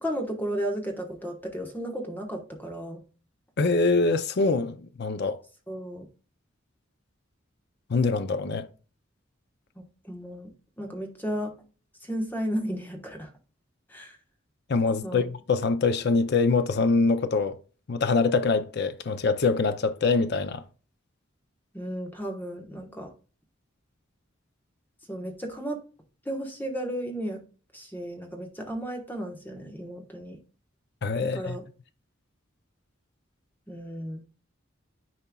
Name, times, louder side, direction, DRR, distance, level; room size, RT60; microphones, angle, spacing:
voice 1, 0.0-3.0 5.7-6.1 10.0-10.5 10.8-11.5 12.0-13.3 13.9-14.2 15.0-15.3 21.7-23.1 25.1-25.8 26.2-27.4 27.7-30.4 31.2-31.6 33.7-34.2, equal, 10° left, 1.2 m, -34 dB
voice 2, 3.6-5.4 7.9-8.7 14.7-17.6 17.9-20.6 31.0-31.6, left 4 dB, 55° left, 0.5 m, -24 dB
10.5 x 4.4 x 2.3 m
head